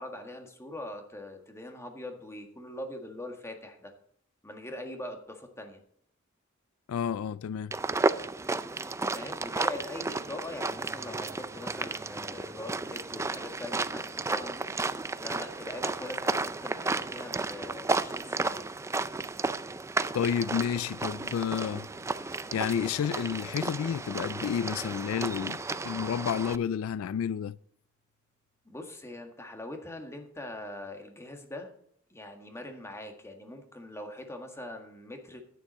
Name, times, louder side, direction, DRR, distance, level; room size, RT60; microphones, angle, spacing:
voice 1, 0.0-3.9 4.4-5.8 9.1-14.7 15.2-18.7 28.6-31.7 32.1-35.4, left 1 dB, 15° left, 1.6 m, -42 dB
voice 2, 6.9-7.7 20.1-21.9 22.5-27.6, left 8 dB, 85° left, 0.3 m, -30 dB
sound 1, 7.7-26.6, right 3 dB, 15° right, 0.4 m, -33 dB
sound 2, 27.7-28.4, left 1 dB, 65° left, 3.5 m, -61 dB
10.5 x 9.3 x 4.2 m
head